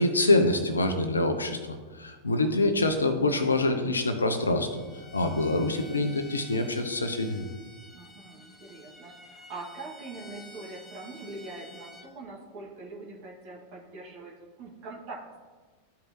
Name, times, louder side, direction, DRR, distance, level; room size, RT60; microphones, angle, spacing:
voice 1, 0.0-7.4, left 2 dB, 75° left, 8 dB, 0.8 m, -26 dB
Bowed string instrument, 4.7-12.1, left 2 dB, 10° left, 1.1 m, -50 dB
voice 2, 5.6-6.4 7.9-14.3 14.6-15.4, right 3 dB, 45° right, -4 dB, 1.9 m, -43 dB
13.0 x 4.8 x 3.0 m, 1.4 s
figure-of-eight pair, 90°, 0 cm